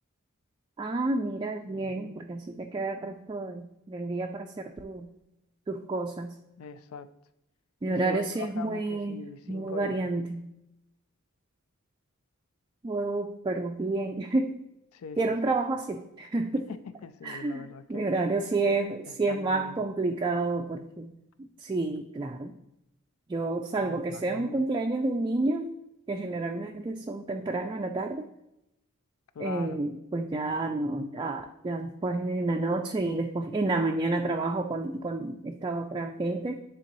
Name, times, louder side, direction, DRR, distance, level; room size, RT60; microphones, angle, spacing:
voice 1, 0.8-5.1 5.7-6.3 7.8-10.4 12.8-14.6 15.2-16.7 17.2-21.1 21.6-22.5 23.3-25.7 26.1-28.3 29.4-36.6, right 2 dB, 20° right, 2 dB, 0.3 m, -30 dB
voice 2, 1.7-2.3 6.6-7.1 7.9-10.1 14.9-15.4 16.7-18.1 19.1-19.9 23.8-24.6 29.3-29.8, left 4 dB, 80° left, 13 dB, 0.4 m, -42 dB
9.8 x 3.7 x 3.0 m, 0.87 s
head